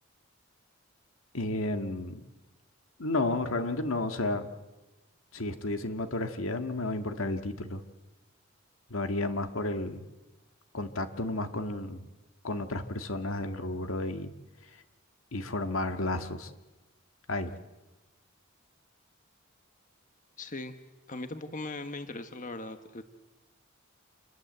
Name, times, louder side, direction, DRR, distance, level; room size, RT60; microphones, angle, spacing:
voice 1, 1.3-2.2 3.0-4.5 5.3-7.8 8.9-10.0 10.7-12.1 12.4-14.3 15.3-16.5 17.3-17.6, left 2 dB, 80° left, 7 dB, 1.9 m, -32 dB
voice 2, 20.4-20.7 21.1-23.0, left 2 dB, 40° left, 8 dB, 1.4 m, -39 dB
28.0 x 21.5 x 8.1 m, 1.1 s
head